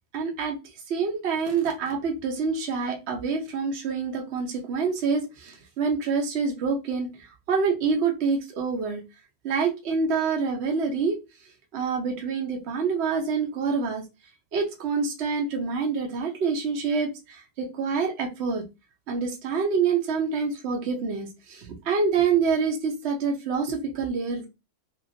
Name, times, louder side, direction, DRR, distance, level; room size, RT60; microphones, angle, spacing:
voice 1, 0.1-0.6 0.9-9.0 9.4-11.1 11.7-14.0 14.5-18.6 19.1-24.5, right 5 dB, 65° right, 1 dB, 0.6 m, -26 dB
2.9 x 2.9 x 2.7 m, 0.25 s
omnidirectional pair, 2.1 m